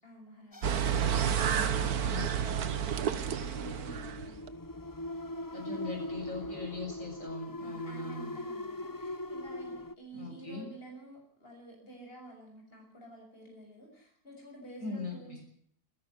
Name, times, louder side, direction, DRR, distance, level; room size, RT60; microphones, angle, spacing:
voice 1, 0.0-4.4 7.6-15.4, right 2 dB, 35° left, 1 dB, 7.0 m, -51 dB
sound 1, 0.5-9.9, left 1 dB, 20° left, 0.7 m, -41 dB
sound 2, 0.6-4.5, right 8 dB, 75° right, 1.7 m, -30 dB
voice 2, 1.5-2.3 5.5-8.3 10.1-10.6 14.8-15.4, left 3 dB, 55° left, 2 dB, 7.6 m, -41 dB
27.0 x 11.5 x 9.5 m, 0.64 s
omnidirectional pair, 1.6 m